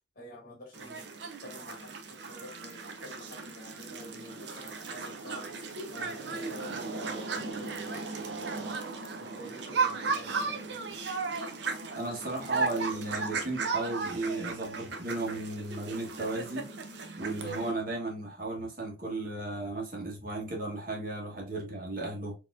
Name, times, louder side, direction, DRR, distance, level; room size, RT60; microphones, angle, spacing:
voice 1, 0.1-1.1 1.4-5.5 5.9-8.8 9.2-11.0, left 1 dB, 45° left, 1.6 m, -49 dB
sound 1, 0.7-17.7, right 4 dB, 60° right, 0.6 m, -36 dB
voice 2, 11.9-16.7 17.2-22.3, right 2 dB, 45° right, 1.3 m, -35 dB
4.2 x 3.0 x 2.4 m
head